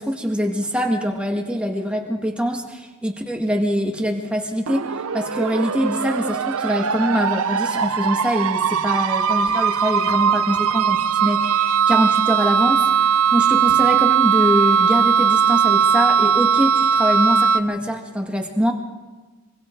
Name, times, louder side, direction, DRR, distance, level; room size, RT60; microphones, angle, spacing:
voice 1, 0.0-4.8 5.1-18.7, equal, 5° right, 2 dB, 1.8 m, -23 dB
sound 1, 4.7-17.6, right 7 dB, 75° right, 0.7 m, -19 dB
24.5 x 23.5 x 4.6 m, 1.2 s
head